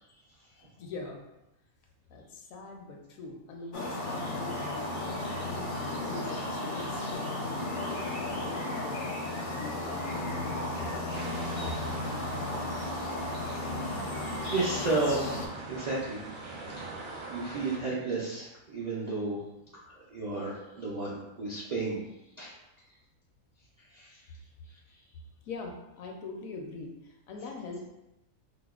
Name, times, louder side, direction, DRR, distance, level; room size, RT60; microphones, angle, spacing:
voice 1, 0.8-1.2 2.1-9.1 9.4-10.4 25.4-27.8, left 3 dB, 75° left, 2 dB, 1.0 m, -43 dB
sound 1, 3.7-15.5, left 1 dB, 55° left, 0.6 m, -34 dB
sound 2, 11.1-17.8, right 2 dB, 85° right, 1.1 m, -44 dB
voice 2, 11.4-11.8 12.1-12.3 13.9-14.1 14.5-15.4 15.7-16.2 16.8-16.9 17.3-19.4 19.8-22.0 22.4-22.5 23.9-24.2, right 3 dB, 55° right, -7 dB, 0.4 m, -33 dB
4.8 x 2.1 x 2.3 m, 0.91 s
omnidirectional pair, 1.5 m